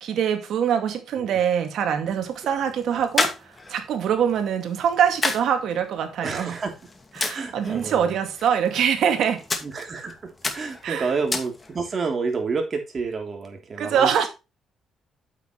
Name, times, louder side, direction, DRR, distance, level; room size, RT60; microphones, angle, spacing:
voice 1, 0.0-6.6 7.2-9.4 10.8-11.1 13.8-14.3, right 8 dB, 70° right, 2.2 m, -24 dB
sound 1, 1.9-12.0, left 3 dB, 25° left, 2.2 m, -33 dB
voice 2, 6.2-6.7 7.3-8.1 9.6-14.3, right 4 dB, 40° right, 3.3 m, -29 dB
9.0 x 8.0 x 3.2 m
cardioid pair, 90°, 0 cm